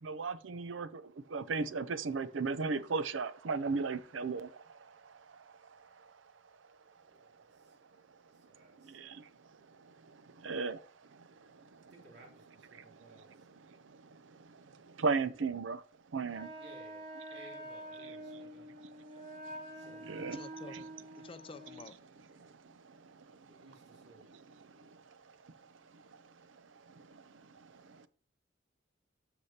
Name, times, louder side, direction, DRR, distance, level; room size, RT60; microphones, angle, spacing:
voice 1, 0.0-6.1 8.8-9.3 9.7-12.0 12.7-15.8 16.1-16.5 17.3-17.5 18.0-20.4 20.7-20.8 21.2-21.3 22.3-28.1, right 4 dB, 85° right, 0.6 m, -39 dB
voice 2, 7.0-7.7 8.4-9.0 11.9-13.5 16.5-17.0 17.3-18.7 19.7-20.3 23.5-24.2, right 2 dB, 60° right, 2.9 m, -59 dB
Wind instrument woodwind instrument, 16.3-21.8, right 1 dB, 45° right, 4.2 m, -47 dB
voice 3, 20.2-22.0, left 3 dB, 30° left, 0.4 m, -51 dB
13.0 x 4.9 x 2.8 m
head